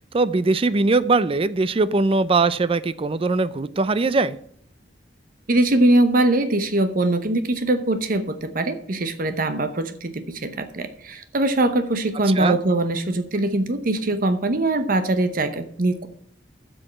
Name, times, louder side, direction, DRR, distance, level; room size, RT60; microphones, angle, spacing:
voice 1, 0.1-4.4 12.3-12.6, right 3 dB, 30° right, 16 dB, 0.4 m, -21 dB
voice 2, 5.5-16.1, right 2 dB, 50° right, 10 dB, 0.8 m, -22 dB
7.6 x 6.4 x 7.7 m, 0.64 s
head